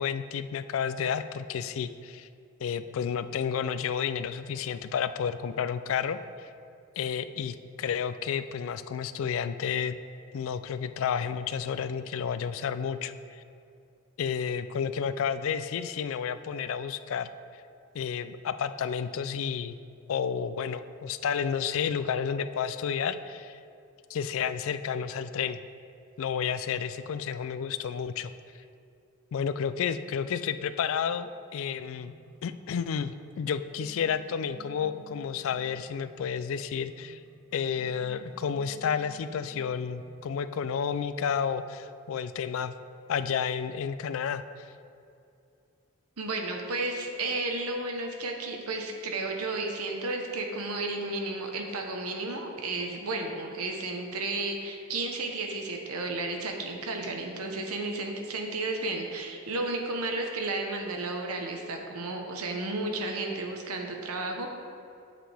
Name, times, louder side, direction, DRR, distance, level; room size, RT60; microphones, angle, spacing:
voice 1, 0.0-2.3 2.6-6.5 7.0-10.0 10.3-13.4 14.2-17.3 17.9-19.8 20.1-23.6 24.1-25.6 26.2-28.3 29.3-32.1 32.4-37.2 37.5-42.7 43.1-44.4, left 7 dB, 65° left, 12 dB, 0.3 m, -31 dB
sound 1, 31.8-40.3, equal, 5° left, 1.1 m, -54 dB
voice 2, 46.2-64.5, right 2 dB, 85° right, 3 dB, 0.9 m, -33 dB
7.7 x 7.6 x 3.4 m, 2.5 s
head